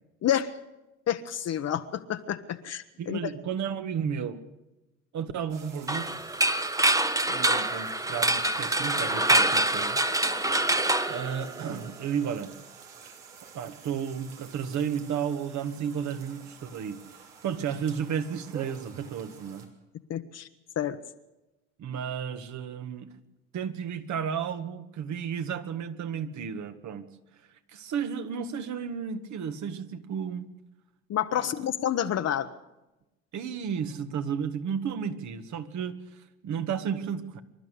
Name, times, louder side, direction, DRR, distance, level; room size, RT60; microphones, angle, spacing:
voice 1, 0.2-0.5 1.1-3.2 20.1-20.5 20.8-21.0 31.1-32.5, left 10 dB, 45° left, 8 dB, 1.1 m, -29 dB
voice 2, 3.0-4.4 5.1-6.1 7.3-10.0 11.1-12.5 13.5-17.1 17.4-19.7 21.8-23.1 23.5-27.1 27.7-30.5 31.3-31.5 33.3-37.4, right 7 dB, 50° right, 10 dB, 1.9 m, -33 dB
sound 1, 5.5-19.7, right 6 dB, 75° right, 3.3 m, -49 dB
sound 2, 5.9-11.9, right 2 dB, 10° right, 1.1 m, -25 dB
25.5 x 12.5 x 8.3 m, 1.0 s
hypercardioid pair, 65°, 36 cm